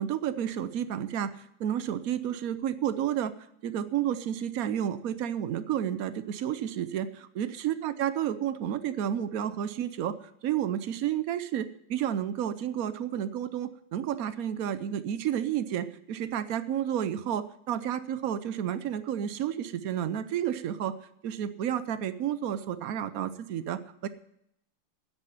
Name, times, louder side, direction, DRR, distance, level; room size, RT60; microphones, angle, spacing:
voice 1, 0.0-3.3 3.6-20.9 21.2-24.1, right 10 dB, 75° right, 13 dB, 0.8 m, -31 dB
9.9 x 8.6 x 9.9 m, 0.75 s
omnidirectional pair, 2.4 m